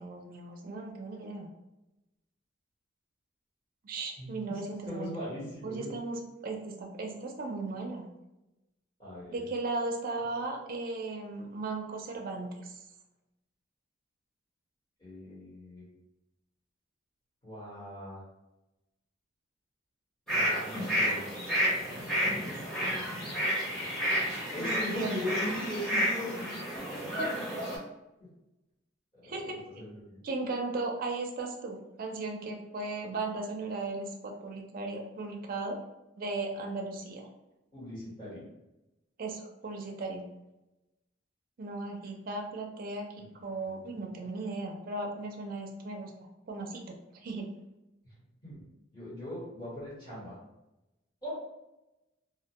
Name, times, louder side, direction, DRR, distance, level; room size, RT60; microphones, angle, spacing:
voice 1, 0.0-1.5 3.8-5.1 5.6-8.1 9.3-12.8 24.4-25.3 27.2-27.3 29.2-29.6 30.2-35.8 36.2-37.3 39.2-40.3 41.6-46.1 46.5-47.5, right 3 dB, 45° right, 2 dB, 0.4 m, -36 dB
voice 2, 4.2-5.9 9.0-9.5 15.0-15.8 17.4-18.2 20.3-21.3 24.5-26.3 28.2-28.3 29.2-30.2 37.7-38.5 43.2-43.3 43.6-44.0 48.4-48.6 48.9-50.3 51.2-51.3, left 1 dB, 25° left, -10 dB, 1.0 m, -40 dB
sound 1, 20.3-27.8, equal, ahead, 0.8 m, -31 dB
2.3 x 2.1 x 2.8 m, 0.95 s
head